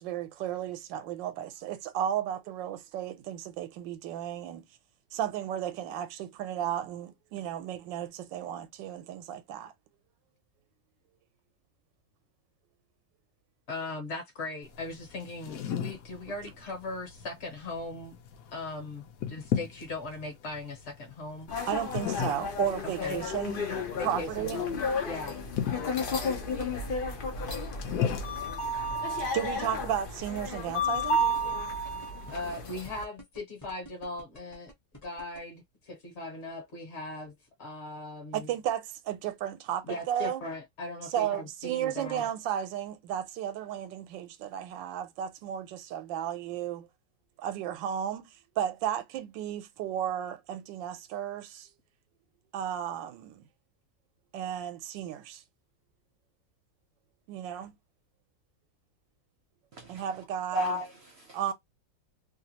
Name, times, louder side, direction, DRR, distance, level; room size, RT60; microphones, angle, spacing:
voice 1, 0.0-4.6 5.1-9.7 21.7-23.6 24.0-24.6 29.3-31.2 38.3-40.4 41.1-46.9 47.4-48.3 48.6-51.7 52.5-53.4 54.3-55.4 57.3-57.8 59.9-60.8 61.3-61.5, right 10 dB, 85° right, 1.3 m, -34 dB
voice 2, 13.7-18.2 18.5-21.5 23.0-23.2 23.9-24.8 25.1-25.4 32.3-34.7 35.0-37.3 37.6-38.5 39.9-42.2, left 2 dB, 45° left, 1.1 m, -39 dB
sound 1, 14.6-30.5, left 9 dB, 65° left, 0.9 m, -38 dB
sound 2, 21.5-33.0, left 1 dB, 85° left, 0.4 m, -32 dB
sound 3, 30.2-35.4, equal, 15° left, 0.7 m, -49 dB
voice 3, 59.7-60.0 60.5-61.5, left 1 dB, 55° right, 0.8 m, -34 dB
3.0 x 2.4 x 2.8 m
omnidirectional pair, 1.9 m